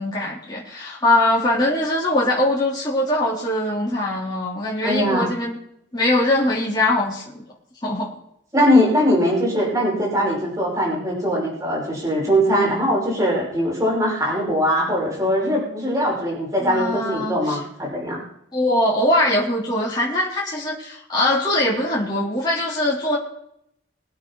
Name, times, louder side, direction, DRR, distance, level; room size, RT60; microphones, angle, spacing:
voice 1, 0.0-5.6 5.9-7.5 7.8-8.1 16.6-17.6 18.5-23.2, left 1 dB, 20° left, -6 dB, 4.0 m, -22 dB
voice 2, 4.8-5.3 8.5-18.2, equal, 20° right, -4 dB, 5.6 m, -21 dB
23.0 x 8.7 x 4.2 m, 0.73 s
head